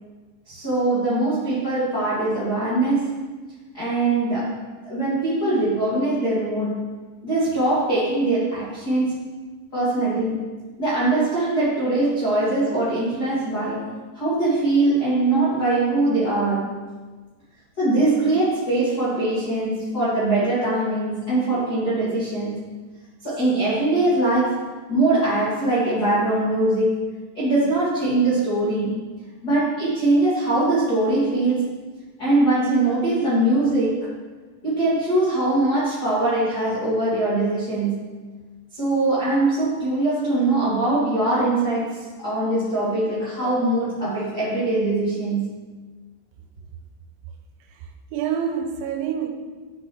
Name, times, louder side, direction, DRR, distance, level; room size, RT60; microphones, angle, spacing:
voice 1, 0.4-3.2 3.7-4.5 4.8-6.8 7.2-9.2 9.7-10.5 10.8-13.9 14.1-16.8 17.8-22.7 23.2-27.0 27.3-29.0 29.4-31.7 32.2-34.1 34.6-38.2 38.7-45.6, right 2 dB, 75° left, 0.9 m, -22 dB
voice 2, 47.7-49.3, right 8 dB, 90° right, 3.0 m, -27 dB
9.7 x 6.6 x 2.9 m
omnidirectional pair, 5.2 m